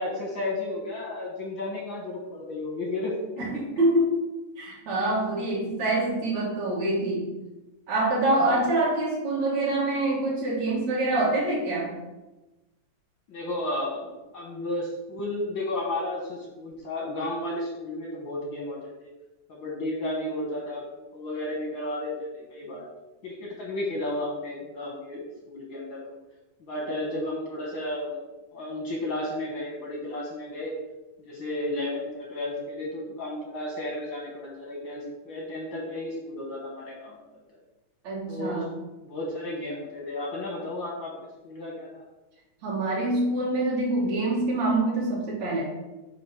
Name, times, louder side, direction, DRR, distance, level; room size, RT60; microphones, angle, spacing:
voice 1, 0.0-3.1 8.5-8.7 13.3-19.1 19.5-22.8 23.2-26.2 26.6-28.2 28.5-30.7 31.2-37.2 38.3-38.7 39.0-41.1 41.4-42.0, left 1 dB, 65° left, -2 dB, 1.1 m, -33 dB
voice 2, 3.4-4.2 4.6-7.3 7.9-11.9 38.0-38.7 42.6-45.6, right 2 dB, 65° right, -6 dB, 2.6 m, -25 dB
8.1 x 2.8 x 5.6 m, 1.1 s
omnidirectional pair, 3.5 m